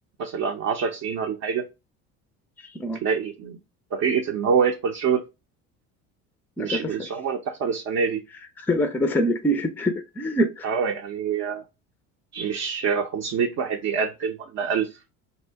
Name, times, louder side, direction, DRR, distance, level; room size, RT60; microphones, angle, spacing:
voice 1, 0.2-1.6 3.0-3.6 3.9-5.2 6.6-8.2 10.6-11.6 12.3-14.9, right 6 dB, 50° right, 0.6 m, -25 dB
voice 2, 8.6-10.7, equal, 5° left, 0.4 m, -24 dB
2.7 x 2.1 x 3.3 m
hypercardioid pair, 75°, 37 cm